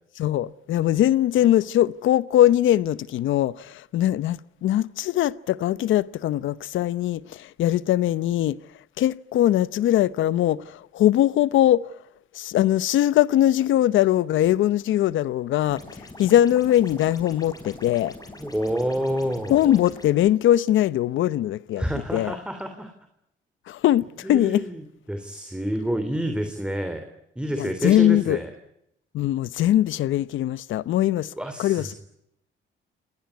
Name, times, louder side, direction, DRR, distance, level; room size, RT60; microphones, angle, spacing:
voice 1, 0.2-8.6 9.0-11.9 12.3-18.1 19.5-21.8 22.1-22.4 23.7-24.6 27.5-28.4 29.1-31.3 31.6-31.9, left 12 dB, 80° left, 0.9 m, -21 dB
sound 1, 15.7-20.1, left 2 dB, 20° left, 4.9 m, -43 dB
voice 2, 18.4-19.7 21.8-22.9 24.2-27.0 27.3-28.5 31.3-31.9, equal, 5° right, 3.2 m, -28 dB
27.0 x 18.5 x 9.5 m
cardioid pair, 90°, 20 cm